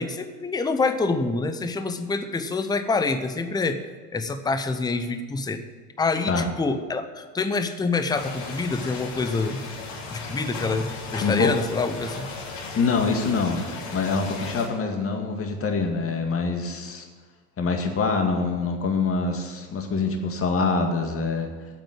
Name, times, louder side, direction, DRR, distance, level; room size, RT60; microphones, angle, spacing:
voice 1, 0.0-3.8 4.1-5.6 6.0-9.6 10.1-12.3, left 3 dB, 10° left, 9 dB, 0.7 m, -26 dB
sound 1, 8.1-14.7, left 3 dB, 55° left, 3.0 m, -36 dB
voice 2, 11.2-11.5 12.8-13.7 13.9-17.1 17.6-21.5, left 4 dB, 25° left, 4 dB, 2.0 m, -25 dB
9.1 x 7.8 x 9.0 m, 1.5 s
hypercardioid pair, 90°, 48 cm